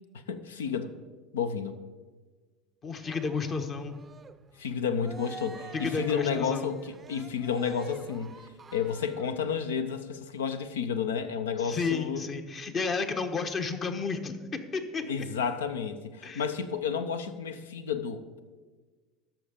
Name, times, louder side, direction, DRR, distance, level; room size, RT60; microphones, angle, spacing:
voice 1, 0.1-1.0 1.3-1.8 4.6-8.4 8.7-12.2 15.0-18.4, left 6 dB, 80° left, 11 dB, 0.6 m, -31 dB
voice 2, 2.8-4.0 5.7-6.7 11.6-15.3 16.2-16.4, left 4 dB, 35° left, 7 dB, 1.0 m, -32 dB
Cheering, 3.0-9.4, right 5 dB, 30° right, 0.5 m, -48 dB
13.0 x 5.8 x 5.1 m, 1.3 s
hypercardioid pair, 70°, 0 cm